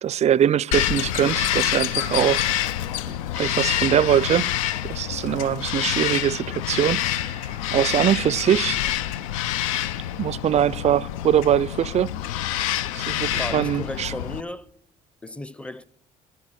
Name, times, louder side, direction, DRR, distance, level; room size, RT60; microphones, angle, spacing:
voice 1, 0.0-2.5 3.1-4.5 4.8-8.8 10.2-12.2 13.0-14.1, right 10 dB, 40° right, 0.4 m, -22 dB
Bird vocalization bird call bird song, 0.7-14.4, left 12 dB, 85° left, 0.4 m, -27 dB
voice 2, 13.4-14.7 15.2-15.8, left 1 dB, 5° left, 0.6 m, -34 dB
13.0 x 8.4 x 6.3 m
hypercardioid pair, 60°, 17 cm